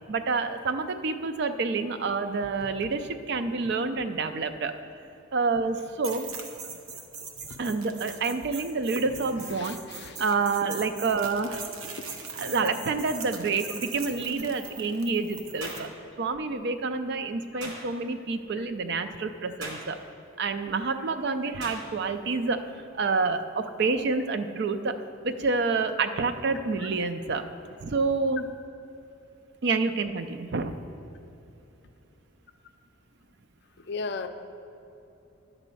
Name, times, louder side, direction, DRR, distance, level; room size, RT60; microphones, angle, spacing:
voice 1, 0.1-4.7 5.3-6.3 7.6-9.8 10.2-11.6 12.4-15.9 16.2-20.0 20.4-24.9 25.2-27.5 27.8-28.5 29.6-30.8, right 4 dB, 55° right, 8 dB, 0.4 m, -28 dB
sound 1, 6.0-15.9, right 5 dB, 85° right, 0.9 m, -41 dB
voice 2, 9.6-10.2 12.0-12.1 12.4-12.5 18.1-18.2 18.5-18.6 26.8-26.9 33.9-34.3, left 4 dB, 55° left, 7 dB, 0.5 m, -36 dB
sound 2, 15.6-15.9 17.6-17.8 19.6-19.9 21.6-21.8, right 1 dB, 70° right, 2.3 m, -37 dB
10.5 x 4.1 x 6.9 m, 2.9 s
head